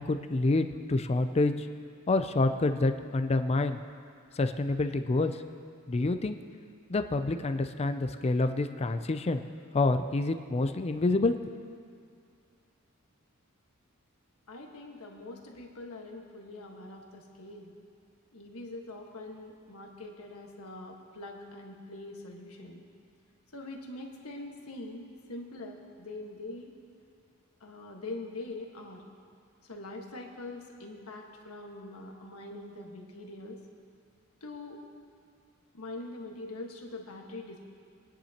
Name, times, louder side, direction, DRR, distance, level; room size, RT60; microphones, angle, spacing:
voice 1, 0.0-1.7 2.1-3.8 4.4-5.3 5.9-6.4 6.9-9.4 9.7-11.3, left 2 dB, 30° left, 8 dB, 0.4 m, -27 dB
voice 2, 14.5-17.7 18.3-22.8 23.5-26.7 27.6-29.0 29.6-33.6 34.4-34.8 35.7-37.7, left 2 dB, 80° left, 1 dB, 1.5 m, -43 dB
22.0 x 10.0 x 2.9 m, 2.3 s
head